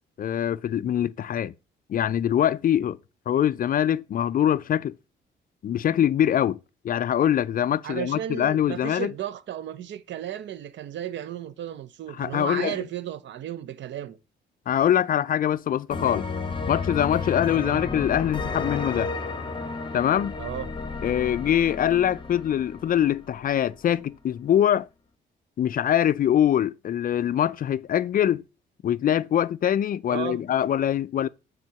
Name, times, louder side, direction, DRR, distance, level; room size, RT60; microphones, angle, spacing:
voice 1, 0.2-1.5 1.9-3.0 3.3-5.0 5.6-6.6 6.8-9.1 12.2-12.8 14.7-16.3 16.7-19.1 19.9-20.3 21.0-24.9 25.6-28.4 28.8-31.3, left 10 dB, 45° left, 0.4 m, -23 dB
voice 2, 7.8-14.2 17.6-17.8 20.4-20.7 30.1-30.4, right 11 dB, 65° right, 0.7 m, -34 dB
sound 1, 15.9-23.5, left 4 dB, 25° left, 0.9 m, -32 dB
6.1 x 3.7 x 5.8 m
cardioid pair, 90°, 20 cm